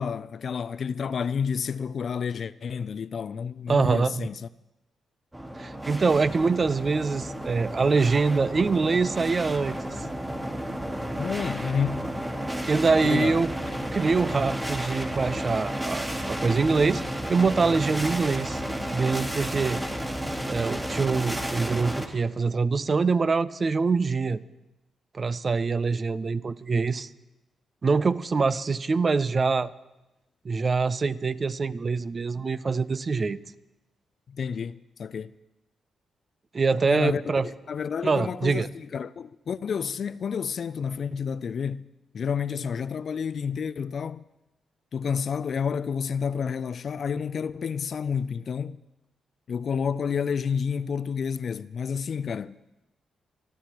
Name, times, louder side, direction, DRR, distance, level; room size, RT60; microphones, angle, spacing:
voice 1, 0.0-4.4 11.2-12.1 13.0-13.4 34.3-35.3 36.9-41.9 42.1-44.2 44.9-48.8 49.5-52.6, left 6 dB, 60° left, 0.4 m, -30 dB
voice 2, 3.7-4.3 5.6-9.8 12.7-13.5 13.9-17.0 17.3-18.6 18.9-19.8 20.5-24.4 25.1-27.1 27.8-29.7 30.4-33.4 36.5-37.5 38.0-38.7, right 4 dB, 45° right, 0.5 m, -24 dB
sound 1, 5.3-22.1, equal, 15° right, 2.2 m, -32 dB
25.0 x 12.0 x 3.0 m
hypercardioid pair, 45°, 0 cm